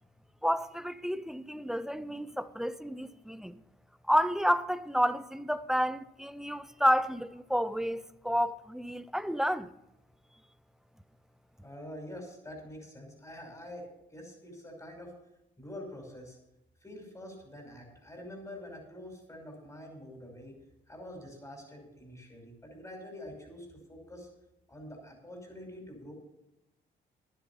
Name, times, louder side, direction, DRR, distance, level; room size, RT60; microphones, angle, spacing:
voice 1, 0.4-3.6 4.1-9.7, equal, ahead, 0.5 m, -30 dB
voice 2, 11.6-15.1 15.6-16.4 16.8-20.6 20.9-24.3 24.7-26.1, left 1 dB, 15° left, 5.6 m, -46 dB
11.5 x 10.5 x 5.5 m
cardioid pair, 90°, 20 cm